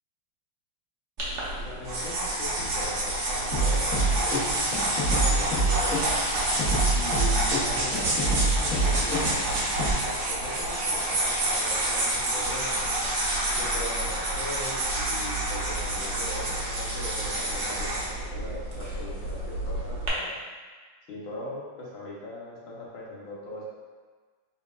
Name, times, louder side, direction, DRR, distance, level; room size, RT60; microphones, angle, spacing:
sound 1, 1.2-20.1, right 1 dB, 65° right, 0.7 m, -28 dB
voice 1, 1.5-6.2 6.9-9.4 10.0-13.1 13.5-20.4 21.1-23.7, left 2 dB, 65° left, -6 dB, 1.6 m, -40 dB
sound 2, 3.5-9.9, right 2 dB, 50° left, 1.1 m, -27 dB
4.4 x 3.6 x 2.4 m, 1.5 s
omnidirectional pair, 2.4 m